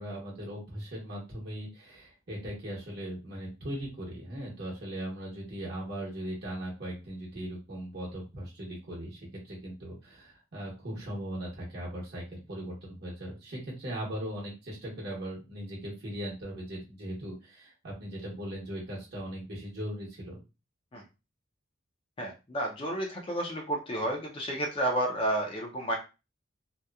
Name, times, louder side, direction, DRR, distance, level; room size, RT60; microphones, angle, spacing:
voice 1, 0.0-20.4, right 1 dB, 55° right, -5 dB, 1.0 m, -39 dB
voice 2, 22.2-26.0, right 1 dB, 30° left, 1 dB, 0.5 m, -31 dB
2.8 x 2.1 x 2.3 m, 0.28 s
head